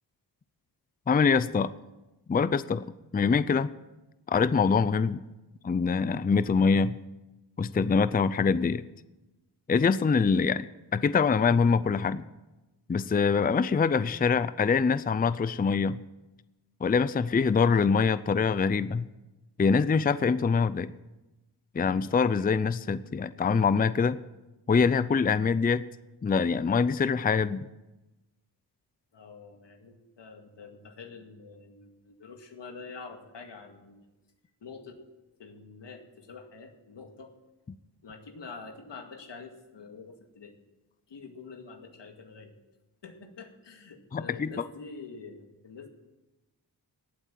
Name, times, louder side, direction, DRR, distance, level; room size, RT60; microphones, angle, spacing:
voice 1, 1.1-1.7 2.3-2.8 3.1-3.7 4.3-5.2 5.6-6.9 7.6-8.8 9.7-10.7 10.9-12.2 12.9-16.0 16.8-19.0 19.6-20.9 21.7-24.2 24.7-25.9 26.2-27.6 44.1-44.5, left 5 dB, 20° left, 15 dB, 0.4 m, -24 dB
voice 2, 29.1-34.1 34.6-35.0 35.3-37.3 38.0-40.6 41.1-42.5 43.0-45.9, left 4 dB, 90° left, 4 dB, 2.2 m, -46 dB
17.5 x 8.4 x 7.5 m, 1.0 s
wide cardioid pair, 100°, 41 cm